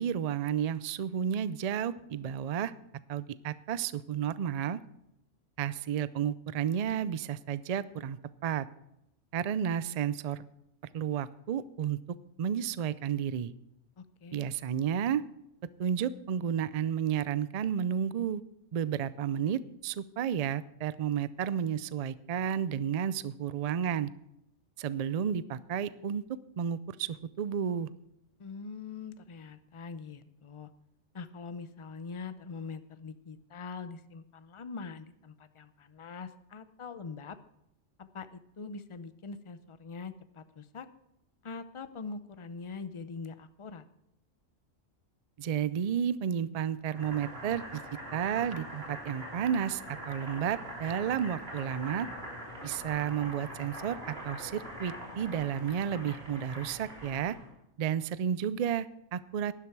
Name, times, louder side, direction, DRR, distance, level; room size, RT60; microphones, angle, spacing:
voice 1, 0.0-2.7 3.1-4.8 5.6-8.7 9.3-10.4 10.9-12.0 12.4-13.5 14.3-15.2 15.8-18.4 18.7-24.1 24.8-27.9 45.4-47.8 48.1-52.1 52.6-54.0 54.2-57.4 57.8-59.5, right 8 dB, 75° right, 17 dB, 0.3 m, -32 dB
voice 2, 14.0-14.5 28.4-30.7 31.1-37.4 38.0-40.9 41.4-43.8, left 4 dB, 35° left, 12 dB, 0.5 m, -43 dB
Boiling, 46.8-57.5, right 1 dB, 50° right, 3.6 m, -43 dB
12.0 x 11.0 x 4.6 m, 0.83 s
omnidirectional pair, 1.3 m